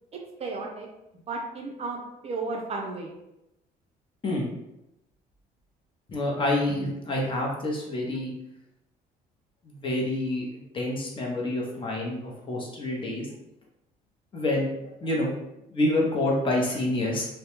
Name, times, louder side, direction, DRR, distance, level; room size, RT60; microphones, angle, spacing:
voice 1, 0.4-0.9 1.3-3.1, right 3 dB, 40° right, 0 dB, 0.5 m, -33 dB
voice 2, 6.1-8.3 9.6-13.3 14.3-15.3 15.7-17.3, left 1 dB, 30° left, -2 dB, 0.7 m, -27 dB
2.2 x 2.1 x 2.9 m, 0.88 s
cardioid pair, 110°, 17 cm